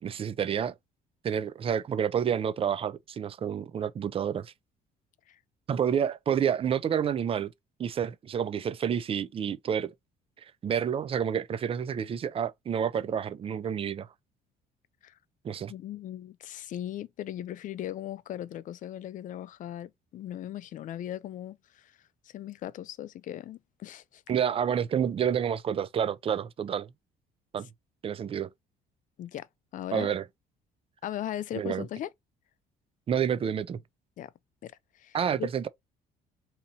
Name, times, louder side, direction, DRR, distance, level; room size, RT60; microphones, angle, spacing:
voice 1, 0.0-0.8 1.2-4.5 5.7-7.5 7.8-9.9 10.6-14.1 15.4-15.7 24.3-26.9 27.5-27.7 28.0-28.5 29.9-30.2 31.5-31.8 33.1-33.8 35.1-35.7, right 8 dB, 35° right, 0.4 m, -29 dB
voice 2, 15.7-21.9 22.3-24.2 29.2-29.5 29.7-30.1 31.0-32.1 34.2-34.3 34.6-34.7 35.0-35.5, left 11 dB, 50° left, 0.4 m, -38 dB
2.8 x 2.6 x 4.1 m
cardioid pair, 110°, 17 cm